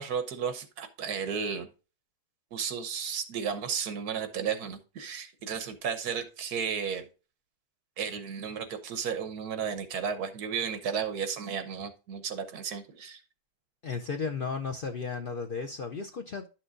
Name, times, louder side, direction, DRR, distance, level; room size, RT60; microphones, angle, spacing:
voice 1, 0.0-1.7 2.5-7.1 8.0-13.2, right 7 dB, 75° right, 1.5 m, -33 dB
voice 2, 13.8-16.5, left 5 dB, 60° left, 0.5 m, -34 dB
11.0 x 6.1 x 2.5 m
omnidirectional pair, 1.7 m